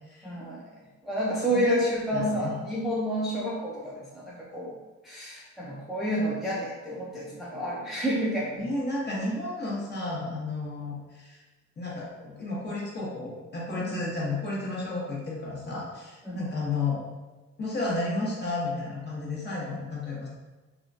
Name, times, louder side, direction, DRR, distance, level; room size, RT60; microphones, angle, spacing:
voice 1, 0.2-0.6 1.0-4.8 5.0-8.7 13.8-14.0 16.2-16.4, equal, ahead, -6 dB, 0.5 m, -29 dB
voice 2, 1.5-1.8 2.1-2.5 8.5-11.4 11.8-17.0 17.6-20.3, left 2 dB, 35° left, -5 dB, 1.0 m, -32 dB
2.9 x 2.3 x 2.5 m, 1.2 s
cardioid pair, 90°, 30 cm